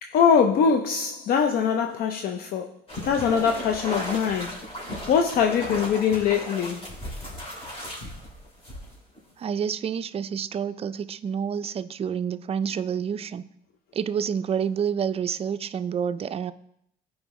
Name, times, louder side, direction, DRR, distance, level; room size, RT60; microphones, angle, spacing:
voice 1, 0.0-2.8 3.0-4.6 5.1-6.9, left 7 dB, 60° left, 0.6 m, -23 dB
sound 1, 2.9-9.2, equal, 35° left, 3.0 m, -36 dB
voice 2, 9.4-13.4 13.9-16.5, right 7 dB, 35° right, 0.4 m, -28 dB
15.0 x 5.0 x 3.1 m
cardioid pair, 110°, 17 cm